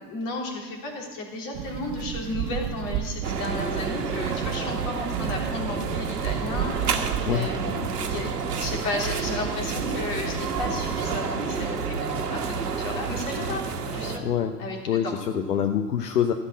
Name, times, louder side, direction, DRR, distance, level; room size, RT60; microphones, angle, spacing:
voice 1, 0.0-8.3 8.6-13.7 13.9-14.2 14.6-14.8 15.0-15.2, left 2 dB, 45° left, 0 dB, 3.2 m, -33 dB
sound 1, 1.5-11.2, right 11 dB, 35° right, 0.5 m, -34 dB
sound 2, 3.2-14.2, right 5 dB, 75° right, 1.3 m, -29 dB
voice 2, 7.3-7.6 14.2-14.5 14.9-16.3, left 9 dB, 75° left, 7 dB, 0.9 m, -25 dB
14.5 x 6.4 x 7.5 m, 1.5 s
figure-of-eight pair, 90°, 48 cm